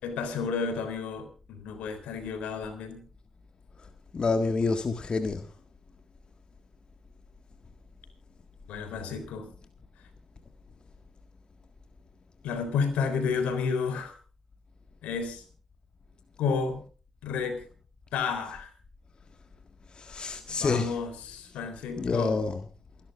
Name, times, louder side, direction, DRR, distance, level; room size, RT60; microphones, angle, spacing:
voice 1, 0.0-3.0 8.7-9.5 12.4-14.1 15.0-15.4 16.4-16.8 17.2-17.6 18.1-18.7 20.6-22.4, left 5 dB, 75° left, 3.5 m, -31 dB
voice 2, 4.1-5.4 19.9-21.1 22.0-22.7, left 4 dB, 45° left, 1.7 m, -28 dB
28.5 x 12.0 x 2.5 m
hypercardioid pair, 40°, 2 cm